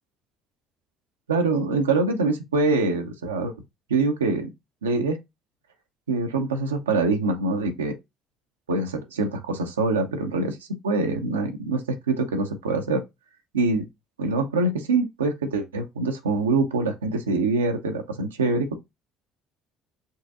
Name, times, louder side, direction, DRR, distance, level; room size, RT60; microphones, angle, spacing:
voice 1, 1.3-3.5 3.9-4.5 4.8-5.2 6.1-7.9 8.7-10.6 10.8-11.8 12.1-13.0 13.5-13.8 14.2-18.8, right 3 dB, 80° right, 0.6 m, -24 dB
5.4 x 3.2 x 2.4 m
figure-of-eight pair, 55°, 0 cm